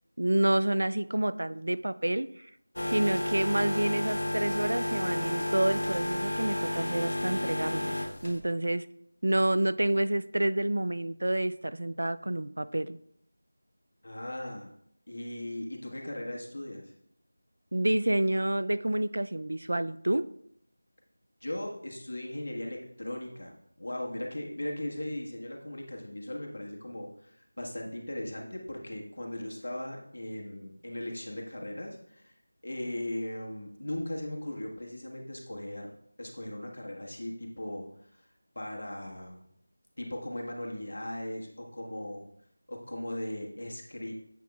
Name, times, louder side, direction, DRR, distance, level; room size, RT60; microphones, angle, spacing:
voice 1, 0.2-2.5 2.8-8.9 9.2-13.0 17.7-20.3, right 1 dB, 70° right, 13 dB, 0.3 m, -28 dB
sound 1, 2.8-8.4, left 1 dB, 85° left, 1.0 m, -31 dB
voice 2, 14.0-14.7 15.1-16.9 21.4-32.3 32.6-35.9 36.2-38.3 38.5-39.4 40.0-42.3 42.7-44.1, left 1 dB, 65° left, -1 dB, 1.5 m, -38 dB
8.0 x 6.2 x 2.4 m, 0.71 s
figure-of-eight pair, 180°, 0 cm